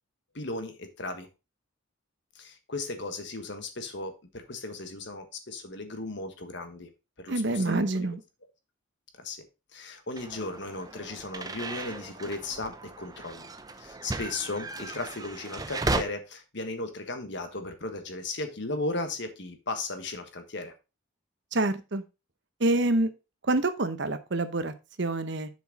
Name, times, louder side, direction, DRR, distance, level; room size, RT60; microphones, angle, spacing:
voice 1, 0.3-1.3 2.3-6.9 7.2-8.1 9.2-9.4 9.7-13.5 13.8-20.7, left 2 dB, 55° left, 7 dB, 1.4 m, -36 dB
voice 2, 7.3-8.2 21.5-22.0 22.6-23.1 23.5-25.5, right 2 dB, 55° right, 11 dB, 0.8 m, -27 dB
sound 1, 10.2-16.0, right 2 dB, 15° right, 0.5 m, -35 dB
7.2 x 6.2 x 4.1 m, 0.28 s
head